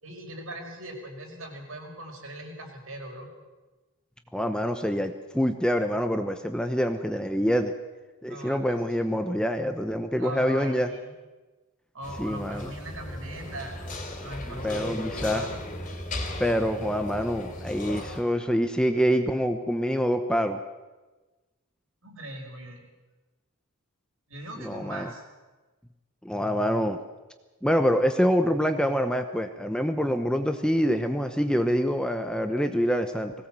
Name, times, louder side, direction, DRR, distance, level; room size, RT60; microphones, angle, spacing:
voice 1, 0.0-3.3 8.3-8.8 10.1-11.1 11.9-13.8 14.2-15.6 22.0-22.8 24.3-25.2, right 1 dB, 70° right, 2 dB, 5.2 m, -40 dB
voice 2, 4.3-7.7 8.2-10.9 12.2-12.7 14.6-15.5 16.4-20.6 24.6-25.1 26.2-27.0 27.6-33.3, equal, 5° left, 7 dB, 0.9 m, -26 dB
sound 1, 12.0-18.2, left 1 dB, 35° left, 3.4 m, -36 dB
21.0 x 17.5 x 7.6 m, 1.2 s
head